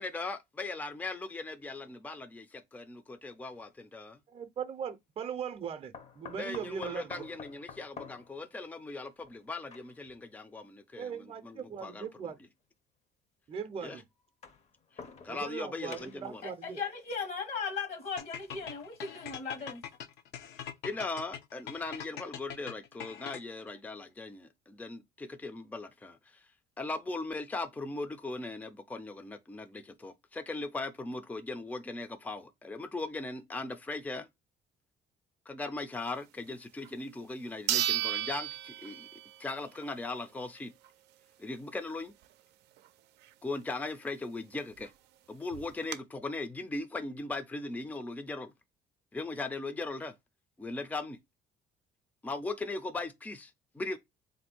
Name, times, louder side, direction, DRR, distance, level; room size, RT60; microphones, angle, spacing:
voice 1, 0.0-4.2 6.4-12.1 13.8-14.0 15.2-16.4 20.8-26.2 26.8-34.3 35.5-39.1 39.4-40.7 41.4-42.1 43.4-44.9 45.3-48.5 49.1-50.1 50.6-51.2 52.2-54.0, left 3 dB, 10° left, 0.5 m, -39 dB
sound 1, 3.5-3.7 5.9-10.2 11.2-11.3 12.5-12.6 14.2-15.6 15.9-16.4 18.2-19.6 20.1-20.2 20.6-20.7, left 5 dB, 40° left, 0.7 m, -50 dB
voice 2, 4.3-7.3 10.9-12.4 13.5-14.0 15.3-16.8, right 7 dB, 35° right, 0.6 m, -39 dB
voice 3, 16.4-19.8, left 5 dB, 60° left, 1.2 m, -37 dB
sound 2, 18.2-23.7, left 9 dB, 80° left, 0.6 m, -43 dB
sound 3, 36.8-36.9 37.7-39.4 39.8-39.9 44.5-44.6 44.8-44.9 45.5-46.0, right 12 dB, 80° right, 0.4 m, -32 dB
3.6 x 2.6 x 4.3 m
cardioid pair, 110°, 17 cm